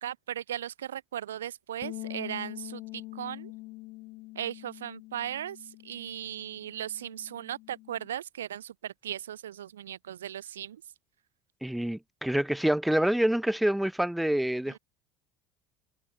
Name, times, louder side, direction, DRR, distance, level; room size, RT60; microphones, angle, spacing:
voice 1, 0.0-3.5 4.4-10.8 14.7-14.8, right 10 dB, 75° right, 0.7 m, -37 dB
sound 1, 1.8-8.1, left 21 dB, 55° left, 5.6 m, -44 dB
voice 2, 11.6-14.8, right 1 dB, 5° right, 1.7 m, -27 dB
figure-of-eight pair, 65°, 0 cm